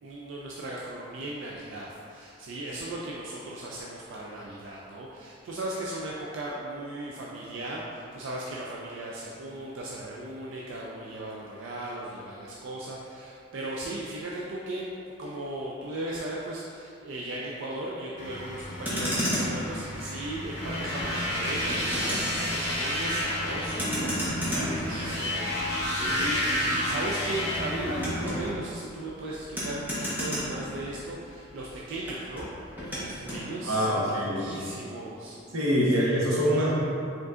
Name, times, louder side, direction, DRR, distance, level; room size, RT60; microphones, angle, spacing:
voice 1, 0.0-35.4 35.9-36.2, right 1 dB, 60° right, -4 dB, 0.4 m, -37 dB
sound 1, 18.2-28.5, left 1 dB, 35° left, 0.5 m, -40 dB
Motor vehicle (road), 18.7-31.3 31.5-33.4, equal, 10° right, 0.9 m, -34 dB
sound 2, 20.6-28.3, left 1 dB, 15° left, 1.0 m, -30 dB
voice 2, 26.0-26.3 33.6-34.5 35.5-36.7, equal, 85° right, -5 dB, 1.0 m, -25 dB
4.7 x 3.7 x 2.4 m, 2.6 s
head